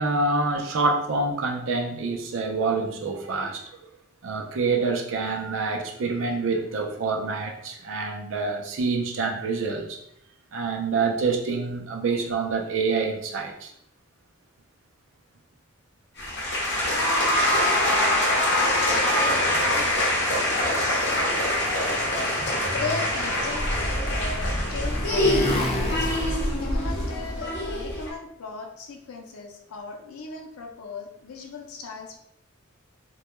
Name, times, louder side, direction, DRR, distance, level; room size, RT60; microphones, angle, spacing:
voice 1, 0.0-3.6 4.2-10.0 10.5-13.7, right 4 dB, 65° right, 1 dB, 0.4 m, -26 dB
sound 1, 16.2-28.1, left 1 dB, 55° left, 0.8 m, -24 dB
voice 2, 16.9-18.4 18.6-20.4 20.8-21.2 22.7-25.5 25.7-26.1 26.6-32.2, left 4 dB, 90° left, 3 dB, 0.5 m, -37 dB
Motorcycle, 23.3-28.0, equal, 30° left, 0.4 m, -29 dB
2.2 x 2.1 x 3.0 m, 0.74 s
head